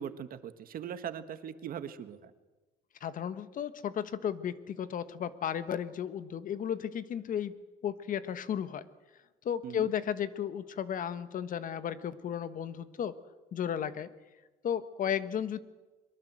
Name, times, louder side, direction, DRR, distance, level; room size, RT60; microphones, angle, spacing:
voice 1, 0.0-2.3 9.6-9.9, right 8 dB, 60° right, 11 dB, 1.6 m, -40 dB
voice 2, 3.0-7.5 7.8-8.9 9.4-13.2 13.5-14.1 14.6-15.6, left 9 dB, 55° left, 13 dB, 1.4 m, -34 dB
23.0 x 21.5 x 7.7 m, 1.2 s
cardioid pair, 110°, 17 cm